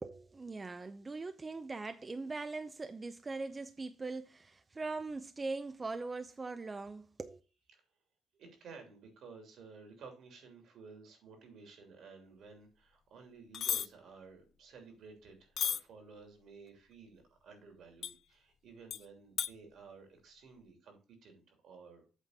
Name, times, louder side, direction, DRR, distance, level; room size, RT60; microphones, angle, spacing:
voice 1, 0.0-7.4, right 3 dB, 25° right, 0.5 m, -41 dB
voice 2, 8.4-22.0, right 4 dB, 70° right, 2.9 m, -54 dB
sound 1, 13.5-13.9 15.6-15.8 18.0-18.1 18.9-19.0 19.4-19.5, left 8 dB, 60° left, 0.5 m, -33 dB
8.1 x 3.7 x 6.6 m
cardioid pair, 90°, 0 cm